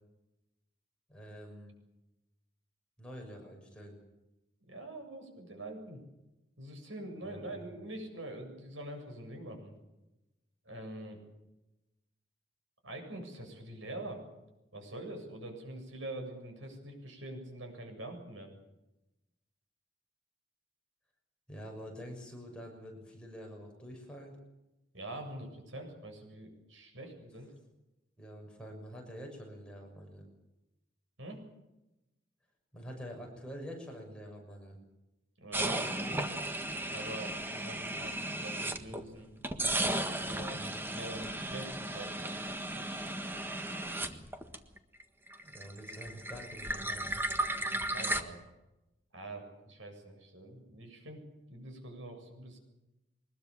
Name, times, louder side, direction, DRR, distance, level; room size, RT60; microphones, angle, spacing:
voice 1, 1.1-1.7 3.0-4.0 7.2-7.6 21.5-24.4 28.2-30.3 32.7-34.8 45.4-47.1, equal, 5° left, 0 dB, 6.4 m, -46 dB
voice 2, 4.7-6.0 6.6-9.7 10.6-11.2 12.8-14.2 14.7-18.5 24.9-27.5 31.2-31.4 35.4-36.2 36.9-39.3 40.1-40.7 40.9-42.3 47.9-48.4 49.1-51.2 51.5-52.6, right 1 dB, 80° right, 4 dB, 7.7 m, -44 dB
sound 1, 35.5-39.1 39.4-45.0 45.3-48.2, right 1 dB, 10° right, 1.5 m, -35 dB
24.0 x 21.0 x 7.3 m, 0.97 s
head